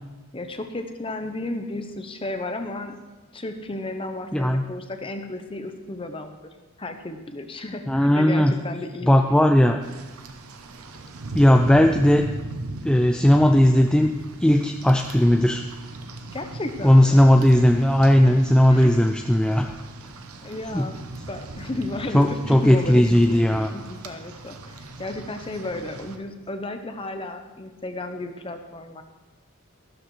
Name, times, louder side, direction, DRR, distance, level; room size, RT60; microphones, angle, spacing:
voice 1, 0.3-3.0 3.3-6.4 6.8-9.5 16.3-17.3 18.4-18.8 20.4-21.0 21.3-29.0, left 2 dB, 25° left, 7 dB, 0.9 m, -33 dB
voice 2, 4.3-4.6 7.9-8.5 9.1-9.8 11.3-12.2 12.8-14.1 14.4-15.6 16.8-19.7 20.7-20.9 22.1-23.7, equal, 5° left, 3 dB, 0.4 m, -17 dB
Rain, 9.8-26.2, right 2 dB, 85° right, 0.9 m, -38 dB
13.0 x 12.0 x 3.3 m, 1.2 s
head